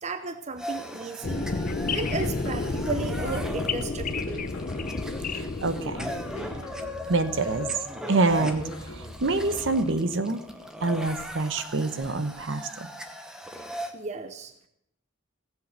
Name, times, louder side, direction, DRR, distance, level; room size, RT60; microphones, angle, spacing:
voice 1, 0.0-1.5 1.9-4.5 13.9-14.7, right 3 dB, 35° right, 9 dB, 0.7 m, -34 dB
sound 1, 0.6-13.9, equal, 5° right, 1.1 m, -39 dB
sound 2, 1.2-6.6, left 3 dB, 40° left, 0.6 m, -31 dB
sound 3, 2.0-3.8 4.1-5.9 6.2-7.9 8.3-10.0, left 1 dB, 70° left, 1.9 m, -43 dB
voice 2, 5.3-6.1 7.1-7.7 8.1-8.6 9.0-10.4 10.8-12.9, right 3 dB, 65° right, 11 dB, 1.0 m, -26 dB
17.0 x 7.8 x 6.6 m, 0.76 s
head